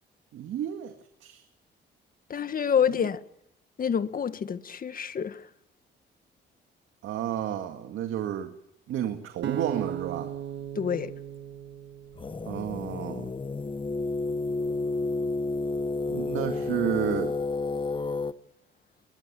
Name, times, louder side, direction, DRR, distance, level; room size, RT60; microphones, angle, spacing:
voice 1, 0.3-0.9 1.2-1.4 2.9-3.0 7.0-8.5 8.9-10.3 12.4-13.3 16.1-17.4, right 10 dB, 80° right, 2.1 m, -31 dB
voice 2, 2.3-3.2 3.8-5.4 10.7-11.1, left 7 dB, 45° left, 1.5 m, -27 dB
sound 1, 9.4-12.6, right 9 dB, 65° right, 1.7 m, -36 dB
sound 2, 12.1-18.3, left 3 dB, 25° left, 1.0 m, -30 dB
22.0 x 21.5 x 7.7 m
cardioid pair, 90°, 20 cm